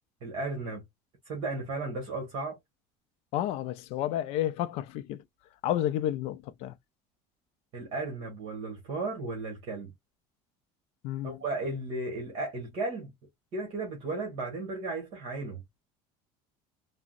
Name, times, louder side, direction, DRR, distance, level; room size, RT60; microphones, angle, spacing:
voice 1, 0.2-0.8 1.2-2.6 7.7-9.9 11.2-13.1 13.5-15.6, right 2 dB, 40° right, 1.3 m, -35 dB
voice 2, 3.3-5.2 5.6-6.7 11.0-11.4, left 12 dB, 45° left, 0.3 m, -31 dB
3.6 x 2.1 x 2.3 m
cardioid pair, 180°, 14 cm